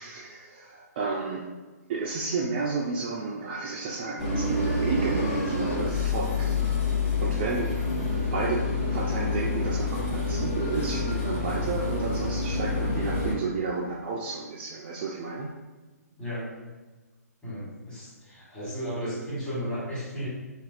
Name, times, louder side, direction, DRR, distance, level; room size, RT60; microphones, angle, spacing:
voice 1, 0.0-1.5 1.9-6.6 6.9-7.7 8.3-8.6 8.9-15.5, right 4 dB, 35° right, -2 dB, 0.3 m, -32 dB
sound 1, 4.2-13.3, left 3 dB, 40° left, 0.7 m, -27 dB
voice 2, 17.4-20.3, equal, 10° left, -9 dB, 1.2 m, -34 dB
3.4 x 2.3 x 2.4 m, 1.3 s
hypercardioid pair, 140°, 9 cm